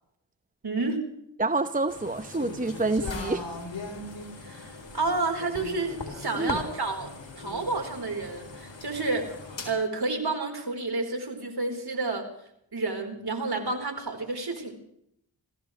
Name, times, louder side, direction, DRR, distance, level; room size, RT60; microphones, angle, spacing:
voice 1, 0.6-1.0 4.4-7.1 7.4-9.3 9.6-12.3 12.7-14.8, right 3 dB, 55° right, 3 dB, 4.2 m, -30 dB
voice 2, 1.4-3.4 6.3-6.6, right 3 dB, 20° right, 10 dB, 0.8 m, -27 dB
sound 1, 1.9-9.7, left 3 dB, 75° left, 4.0 m, -39 dB
26.0 x 15.5 x 3.2 m, 0.74 s
cardioid pair, 45°, 46 cm